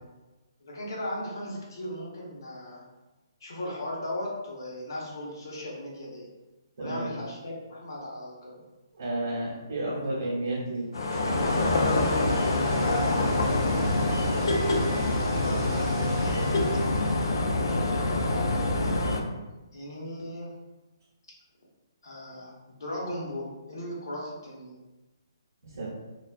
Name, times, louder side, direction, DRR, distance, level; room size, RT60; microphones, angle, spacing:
voice 1, 0.6-2.8 3.4-6.3 6.8-8.6 12.8-13.9 15.2-16.5 17.6-18.5 18.8-18.9 19.7-20.5 22.0-24.8, left 1 dB, 65° left, -3 dB, 0.8 m, -37 dB
voice 2, 8.9-10.8 25.7-25.9, right 1 dB, 45° right, -9 dB, 1.0 m, -31 dB
sound 1, 10.9-19.2, left 2 dB, 80° left, 0.4 m, -25 dB
sound 2, 10.9-17.7, right 3 dB, 30° right, 0.5 m, -40 dB
2.3 x 2.2 x 2.4 m, 1.1 s
hypercardioid pair, 170°, 2 cm